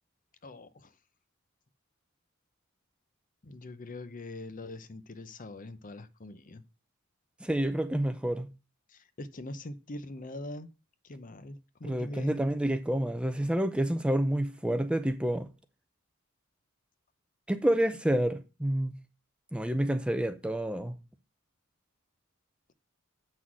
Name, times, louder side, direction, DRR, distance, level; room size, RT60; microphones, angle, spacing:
voice 1, 0.4-0.9 3.4-6.6 8.9-10.7 11.0-12.4, left 1 dB, 40° left, 0.7 m, -42 dB
voice 2, 7.4-8.5 11.8-15.5 17.5-19.0 19.5-21.0, right 1 dB, 5° right, 0.5 m, -28 dB
7.8 x 6.1 x 6.1 m
head